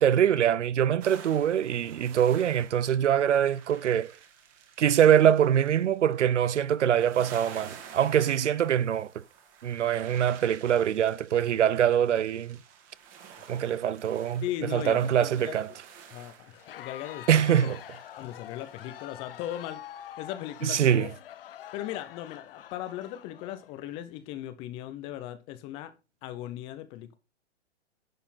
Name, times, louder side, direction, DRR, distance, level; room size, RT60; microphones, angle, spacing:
voice 1, 0.0-4.1 4.8-9.2 9.6-12.6 13.5-14.4 14.7-15.7 17.3-17.8 20.6-21.1, right 9 dB, 80° right, 0.7 m, -24 dB
sound 1, 1.0-19.9 20.2-20.4, right 7 dB, 25° right, 1.7 m, -51 dB
voice 2, 14.4-15.6 16.1-17.7 18.2-19.8 20.2-21.1 21.7-25.9 26.2-27.2, left 13 dB, 15° left, 0.7 m, -38 dB
Crowd, 16.5-24.0, left 11 dB, 55° left, 0.7 m, -46 dB
10.5 x 6.4 x 4.1 m
hypercardioid pair, 150°, 35 cm